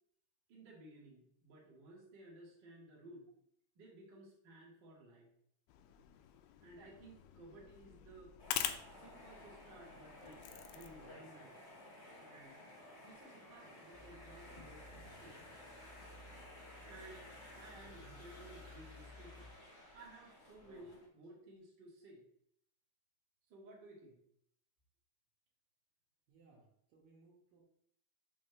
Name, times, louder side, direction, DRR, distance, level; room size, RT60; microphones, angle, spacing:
voice 1, 0.5-3.3 3.7-5.3 6.6-8.3 9.0-11.6 12.2-12.7 12.9-15.4 16.8-17.3 17.5-19.5 19.9-22.3 23.5-24.2, right 2 dB, 45° right, -4 dB, 1.6 m, -57 dB
sound 1, 5.7-11.1, left 11 dB, 90° left, 2.6 m, -45 dB
sound 2, 8.4-21.1, left 1 dB, 50° left, 0.8 m, -56 dB
sound 3, 13.9-19.5, left 2 dB, 15° left, 1.0 m, -58 dB
voice 2, 26.3-27.6, right 3 dB, 65° right, -2 dB, 2.8 m, -65 dB
6.4 x 5.5 x 3.3 m, 0.70 s
omnidirectional pair, 4.5 m